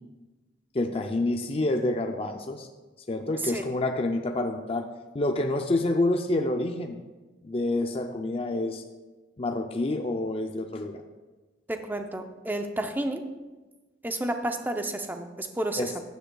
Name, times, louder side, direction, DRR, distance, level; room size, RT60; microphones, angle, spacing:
voice 1, 0.7-2.7 3.1-4.9 5.1-7.0 7.4-8.8 9.4-11.0 15.8-15.9, left 2 dB, 30° left, 4 dB, 0.5 m, -28 dB
voice 2, 11.7-13.2 14.0-16.0, right 1 dB, 10° right, 5 dB, 0.6 m, -31 dB
15.0 x 10.0 x 2.3 m, 1.2 s
head